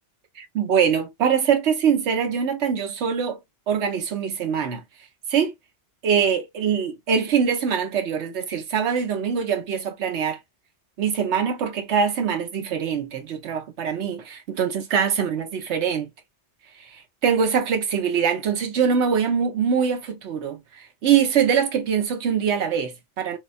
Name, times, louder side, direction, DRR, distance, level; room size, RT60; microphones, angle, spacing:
voice 1, 0.4-3.4 3.7-4.8 5.3-5.5 6.0-10.4 11.0-16.1 16.8-23.4, right 7 dB, 85° right, 1.1 m, -23 dB
3.2 x 2.7 x 2.4 m
omnidirectional pair, 1.1 m